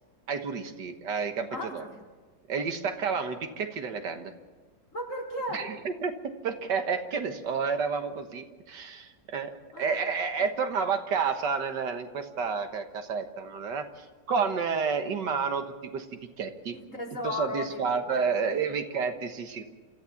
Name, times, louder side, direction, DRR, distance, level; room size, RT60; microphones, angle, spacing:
voice 1, 0.3-1.5 1.7-1.9 2.5-4.3 5.5-9.5 9.8-16.1 16.4-16.8 17.2-19.6, right 5 dB, 75° right, 7 dB, 2.0 m, -30 dB
voice 2, 1.5-1.9 4.9-5.7 9.7-10.0 10.4-10.5 16.7-17.8 18.1-18.7, left 1 dB, 45° left, -1 dB, 4.0 m, -36 dB
28.0 x 14.0 x 7.2 m, 1.4 s
omnidirectional pair, 1.9 m